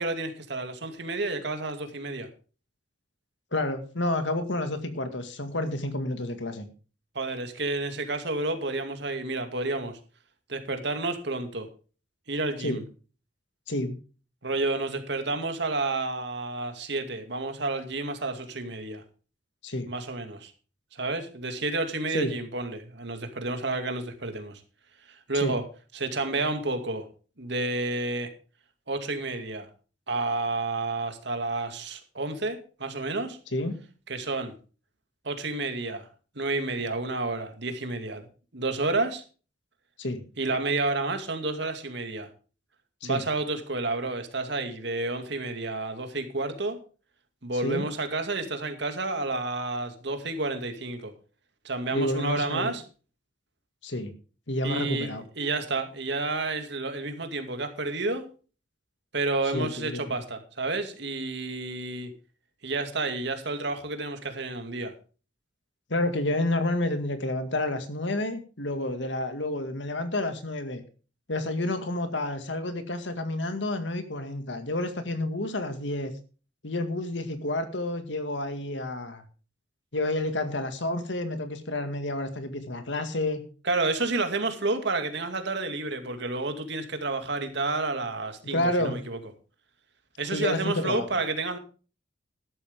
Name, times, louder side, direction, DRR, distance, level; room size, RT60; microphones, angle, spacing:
voice 1, 0.0-2.3 7.1-9.9 10.5-11.7 12.3-12.8 14.4-19.0 19.9-20.5 20.9-24.6 25.1-25.6 25.9-27.1 27.4-28.3 28.9-29.7 30.1-33.4 34.1-34.5 35.2-36.1 36.4-38.2 38.5-39.2 40.4-42.3 43.0-46.8 47.4-51.1 51.6-52.8 54.6-55.1 55.4-58.3 59.1-62.1 62.6-64.9 83.6-89.2 90.2-91.6, right 2 dB, 65° right, 7 dB, 2.3 m, -30 dB
voice 2, 3.5-6.7 12.6-12.8 13.7-13.9 19.6-19.9 22.1-22.3 25.4-25.5 33.5-33.8 40.0-40.2 43.0-43.2 47.6-47.8 51.9-52.8 53.8-54.1 54.5-55.2 59.5-60.2 65.9-70.8 71.3-76.1 76.6-79.2 79.9-83.4 88.5-89.0 90.3-91.0, left 1 dB, 75° left, 8 dB, 2.0 m, -29 dB
13.5 x 12.0 x 3.6 m, 0.36 s
head